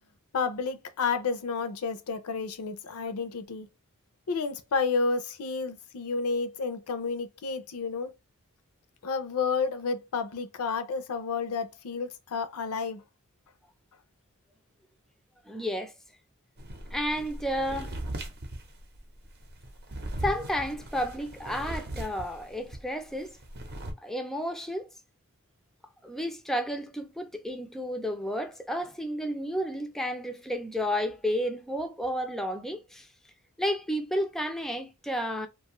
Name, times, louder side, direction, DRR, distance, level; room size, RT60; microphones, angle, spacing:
voice 1, 0.3-3.7 4.3-8.1 9.0-13.0, left 4 dB, 75° left, 0.5 m, -31 dB
voice 2, 15.5-15.9 16.9-18.0 20.2-23.4 24.0-24.9 26.0-33.1 33.6-35.5, equal, ahead, 0.3 m, -31 dB
sound 1, 16.6-22.9 23.2-23.9, right 1 dB, 50° right, 0.7 m, -38 dB
2.5 x 2.3 x 2.9 m
head